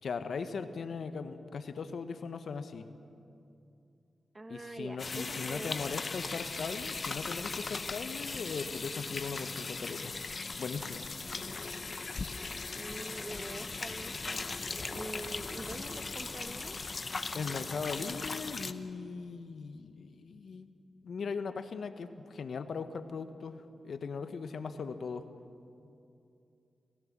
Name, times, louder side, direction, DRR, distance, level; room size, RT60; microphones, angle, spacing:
voice 1, 0.0-2.9 4.5-10.1 10.6-11.2 17.3-20.7 21.0-25.3, left 5 dB, 70° left, 10 dB, 1.2 m, -39 dB
voice 2, 4.3-6.0 12.7-14.5 14.9-16.8, right 2 dB, 25° right, 9 dB, 1.3 m, -44 dB
sound 1, 5.0-18.7, left 4 dB, 45° left, 1.0 m, -38 dB
28.5 x 15.0 x 7.5 m, 2.6 s
cardioid pair, 55°, 0 cm